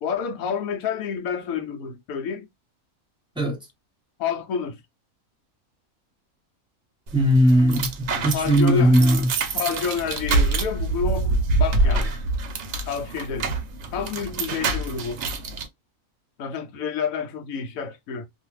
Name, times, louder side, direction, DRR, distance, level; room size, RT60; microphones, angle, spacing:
voice 1, 0.0-2.5 4.2-4.8 8.1-8.9 9.5-12.2 12.9-13.5 13.9-15.2 16.4-18.3, left 6 dB, 75° left, 1.1 m, -29 dB
voice 2, 7.1-9.3, equal, 5° right, 0.9 m, -18 dB
sound 1, 7.1-15.7, right 3 dB, 60° right, 0.8 m, -26 dB
2.5 x 2.4 x 3.0 m
omnidirectional pair, 1.5 m